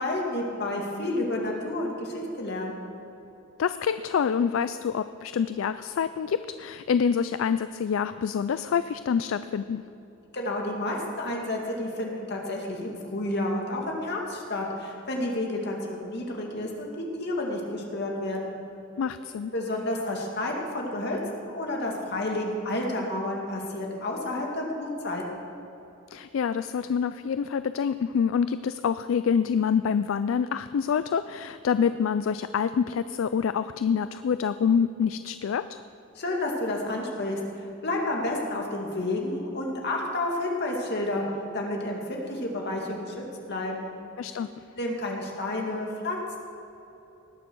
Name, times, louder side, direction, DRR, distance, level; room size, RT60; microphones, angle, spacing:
voice 1, 0.0-2.8 10.3-18.6 19.5-21.2 21.5-25.2 36.2-41.2 41.5-43.9 44.8-46.4, left 1 dB, 50° left, 0 dB, 2.2 m, -30 dB
voice 2, 3.6-9.8 19.0-19.5 26.1-35.8 44.2-44.5, left 7 dB, 70° left, 12 dB, 0.3 m, -26 dB
19.0 x 7.0 x 6.2 m, 3.0 s
head